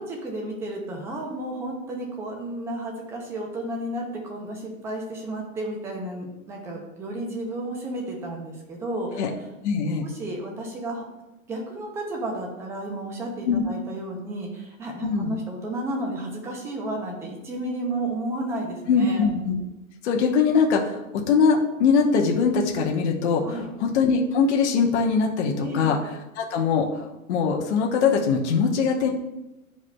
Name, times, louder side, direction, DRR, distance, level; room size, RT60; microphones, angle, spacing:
voice 1, 0.0-9.3 10.0-11.0 11.5-19.3 23.4-23.7 25.6-25.9, right 1 dB, 5° right, 0 dB, 0.5 m, -32 dB
voice 2, 9.6-10.1 13.5-13.6 15.0-15.4 18.9-19.6 20.0-23.4 23.8-26.0 26.4-29.1, left 5 dB, 55° left, 1 dB, 1.1 m, -22 dB
11.0 x 4.8 x 2.3 m, 0.99 s
hypercardioid pair, 145°, 42 cm